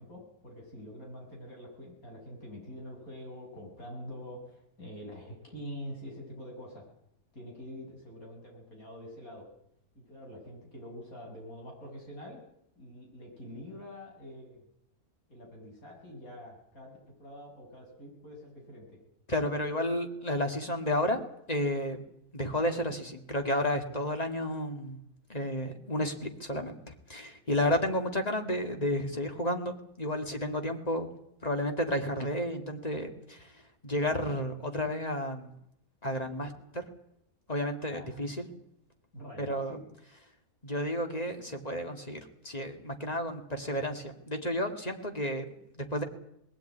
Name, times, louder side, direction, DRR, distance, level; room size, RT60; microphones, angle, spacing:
voice 1, 0.0-6.8 7.3-9.5 9.9-12.4 12.8-14.6 15.3-19.0 37.9-38.2 39.1-39.8, equal, 65° left, 0 dB, 7.9 m, -45 dB
voice 2, 19.3-22.0 22.3-25.0 25.3-31.1 31.4-33.5 33.8-35.5 36.0-36.8 37.5-38.5 39.4-39.8 40.6-46.0, left 1 dB, 25° left, 5 dB, 2.4 m, -32 dB
20.0 x 16.5 x 9.5 m, 0.76 s
omnidirectional pair, 1.6 m